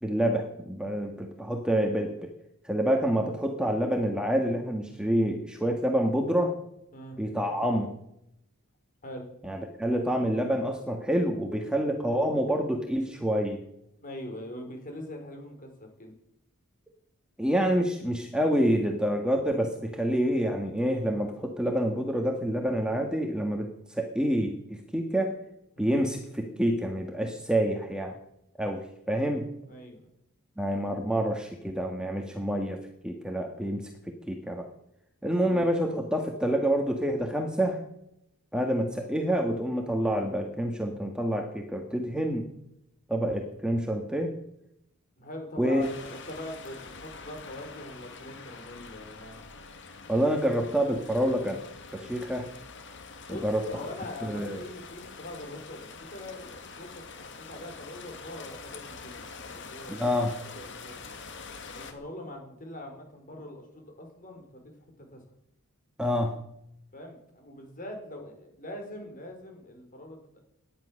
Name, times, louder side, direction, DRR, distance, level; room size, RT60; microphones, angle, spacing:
voice 1, 0.0-2.3 2.6-6.5 7.2-7.9 9.4-13.6 17.4-25.4 25.8-28.2 28.6-29.5 30.6-32.8 33.0-33.9 34.3-34.7 35.2-37.8 38.5-42.5 43.1-44.3 45.6-45.9 50.1-51.6 51.9-52.5 53.3-53.8 54.2-54.6 59.9-60.3 66.0-66.3, equal, 5° right, 3 dB, 1.6 m, -27 dB
voice 2, 14.0-16.1 25.8-26.0 29.6-30.1 35.4-35.6 38.5-38.7 45.2-49.5 53.3-60.1 60.5-61.1 61.7-64.7 65.0-65.2 66.9-70.4, left 1 dB, 40° left, 3 dB, 4.8 m, -43 dB
sound 1, 45.8-61.9, left 4 dB, 55° left, 2.0 m, -45 dB
18.0 x 11.0 x 6.5 m, 0.77 s
head